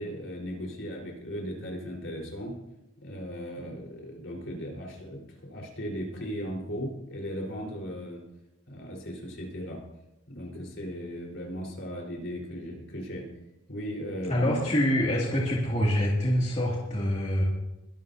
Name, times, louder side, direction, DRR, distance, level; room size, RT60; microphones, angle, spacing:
voice 1, 0.0-2.6 3.0-8.2 8.7-9.8 10.3-13.3 13.7-14.5, equal, 60° left, -1 dB, 4.3 m, -37 dB
voice 2, 14.2-17.4, equal, 30° left, -5 dB, 2.4 m, -25 dB
22.5 x 12.0 x 2.8 m, 0.94 s
head